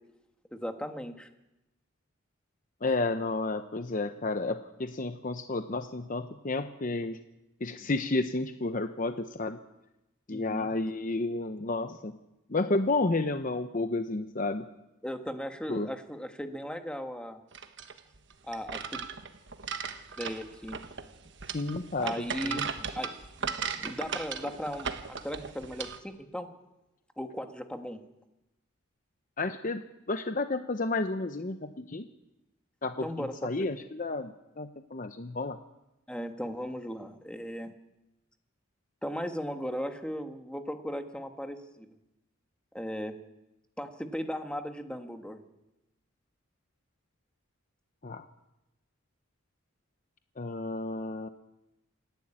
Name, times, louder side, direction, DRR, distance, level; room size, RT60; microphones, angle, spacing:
voice 1, 0.5-1.3 10.3-10.7 15.0-17.4 18.5-19.0 20.2-20.8 22.0-22.7 22.9-26.5 27.2-28.0 33.0-33.7 36.1-37.7 39.0-41.9 42.7-43.1 43.8-45.4, equal, 5° left, 6 dB, 1.4 m, -37 dB
voice 2, 2.8-7.2 7.6-9.6 10.3-12.1 12.5-14.7 15.7-15.9 21.5-22.1 22.4-22.7 29.4-29.8 30.1-32.1 32.8-35.6 48.0-48.2 50.4-51.3, left 2 dB, 40° left, 8 dB, 0.8 m, -31 dB
sound 1, 17.5-26.0, right 6 dB, 60° right, 1.3 m, -37 dB
27.5 x 11.5 x 8.8 m, 0.95 s
head